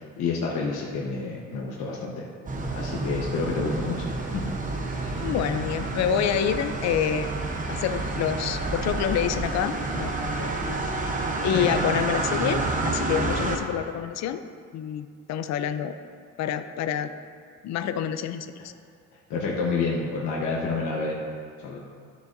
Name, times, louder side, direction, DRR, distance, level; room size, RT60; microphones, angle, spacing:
voice 1, 0.0-2.2 2.7-4.5 5.0-5.3 11.5-11.8 19.3-21.2 21.6-21.8, left 4 dB, 75° left, -3 dB, 1.1 m, -29 dB
sound 1, 2.5-13.6, right 2 dB, 25° right, 0.8 m, -29 dB
voice 2, 5.2-7.3 7.7-10.8 11.4-14.4 14.7-15.9 16.4-17.1 17.6-18.7, left 9 dB, 60° left, 10 dB, 0.5 m, -27 dB
12.5 x 6.8 x 2.6 m, 2.1 s
cardioid pair, 135°, 31 cm